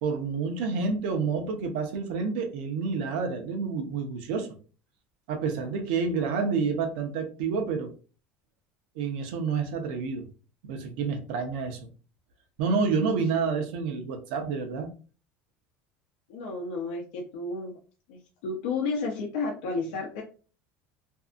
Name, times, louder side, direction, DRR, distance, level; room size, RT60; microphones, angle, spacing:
voice 1, 0.0-4.5 5.3-7.9 9.0-10.3 10.6-11.9 12.6-14.9, right 5 dB, 80° right, 4 dB, 0.7 m, -29 dB
voice 2, 16.3-17.7 18.1-20.2, left 3 dB, 90° left, -1 dB, 0.6 m, -32 dB
2.6 x 2.5 x 2.3 m, 0.37 s
supercardioid pair, 130°, 5 cm